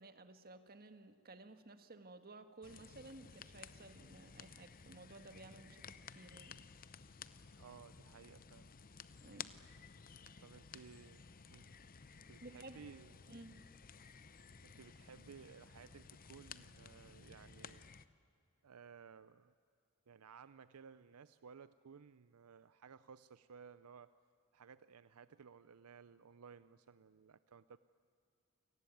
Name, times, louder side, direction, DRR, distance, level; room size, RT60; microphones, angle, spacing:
voice 1, 0.0-6.6 9.2-9.5 10.3-10.4 12.4-12.8 13.3-13.6, right 2 dB, 45° right, 9 dB, 1.6 m, -55 dB
sound 1, 2.6-18.1, left 6 dB, 40° left, 0.7 m, -55 dB
voice 2, 7.5-8.7 10.4-11.2 11.5-11.7 12.3-13.1 14.6-17.9 18.6-19.5 20.1-24.1 24.5-27.8, right 6 dB, 75° right, 14 dB, 0.5 m, -58 dB
28.5 x 19.0 x 9.3 m, 2.5 s
head